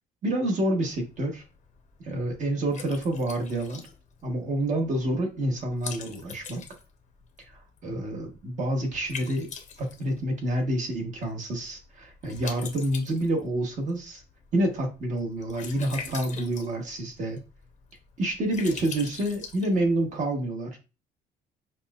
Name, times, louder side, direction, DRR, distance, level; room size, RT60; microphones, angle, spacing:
voice 1, 0.2-1.4 2.0-3.8 4.2-6.6 7.5-9.5 9.8-14.2 14.5-17.4 18.2-20.8, right 1 dB, 45° right, 3 dB, 1.1 m, -28 dB
Liquid, 0.8-20.2, left 6 dB, 45° left, 0.7 m, -45 dB
5.6 x 2.1 x 2.3 m, 0.30 s
cardioid pair, 110°, 17 cm